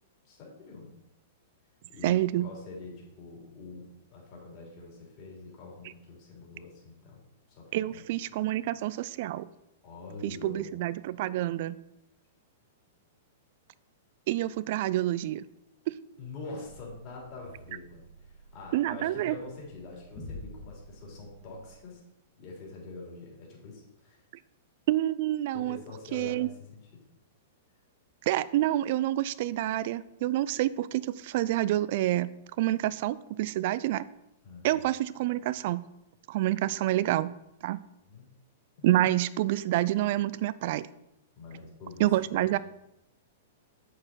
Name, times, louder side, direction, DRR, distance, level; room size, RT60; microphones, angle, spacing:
voice 1, 0.2-0.9 1.9-8.0 9.8-10.8 16.2-22.0 22.4-24.2 25.5-26.9 34.4-34.8 38.0-38.3 38.8-39.0 41.3-42.6, left 3 dB, 40° left, -3 dB, 3.3 m, -45 dB
voice 2, 2.0-2.5 7.7-9.5 10.2-11.8 14.3-15.4 15.9-16.0 18.7-19.4 24.9-25.8 26.1-26.5 28.3-32.3 32.6-34.0 34.6-35.8 36.3-37.3 37.6-37.8 38.8-40.9 42.0-42.6, right 14 dB, 50° right, 18 dB, 0.4 m, -28 dB
sound 1, 16.6-21.7, left 1 dB, 15° left, 2.0 m, -49 dB
7.6 x 6.6 x 4.3 m, 0.85 s
figure-of-eight pair, 105°, 0 cm